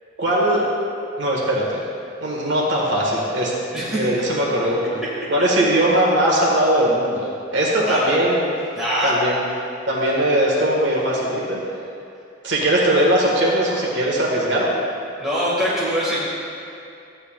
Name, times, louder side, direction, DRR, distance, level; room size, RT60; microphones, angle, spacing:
voice 1, 0.2-0.6 1.2-1.8 2.2-3.5 3.9-5.0 5.3-8.5 9.0-9.4 9.9-11.6 12.4-14.8, right 1 dB, 65° right, -4 dB, 1.6 m, -20 dB
voice 2, 3.7-4.1 7.8-8.0 8.8-9.1 15.2-16.3, equal, ahead, -9 dB, 1.8 m, -23 dB
14.0 x 9.7 x 2.4 m, 2.5 s
head